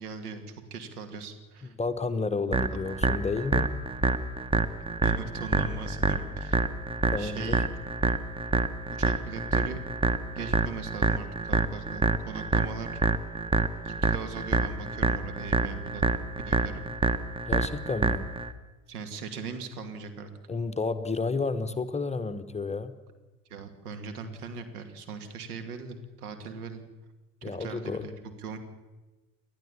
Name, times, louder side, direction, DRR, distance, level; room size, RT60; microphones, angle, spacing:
voice 1, 0.0-1.7 5.0-6.6 7.2-7.7 8.1-8.2 9.0-9.8 10.3-12.9 13.8-16.1 16.5-16.8 18.9-20.3 23.5-26.8 27.4-28.6, right 5 dB, 70° right, 7 dB, 2.5 m, -39 dB
voice 2, 1.8-3.8 7.1-7.6 17.5-18.4 20.5-22.9 27.4-28.1, left 3 dB, 15° left, 10 dB, 1.1 m, -31 dB
sound 1, 2.5-18.5, right 3 dB, 10° right, 1.2 m, -27 dB
30.0 x 12.0 x 7.2 m, 1.2 s
figure-of-eight pair, 65°, 47 cm